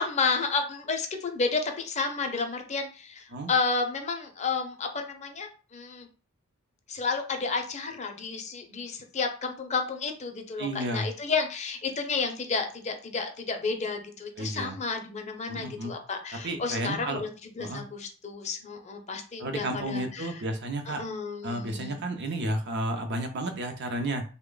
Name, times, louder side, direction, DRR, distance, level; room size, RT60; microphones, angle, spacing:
voice 1, 0.0-6.1 6.9-20.4 20.9-22.0, left 4 dB, 30° left, 5 dB, 0.5 m, -31 dB
voice 2, 10.6-11.1 14.4-14.8 15.5-15.9 16.4-17.2 17.6-17.8 19.4-21.0 21.4-24.2, right 1 dB, 55° right, 5 dB, 0.6 m, -32 dB
3.3 x 2.1 x 3.8 m, 0.36 s
head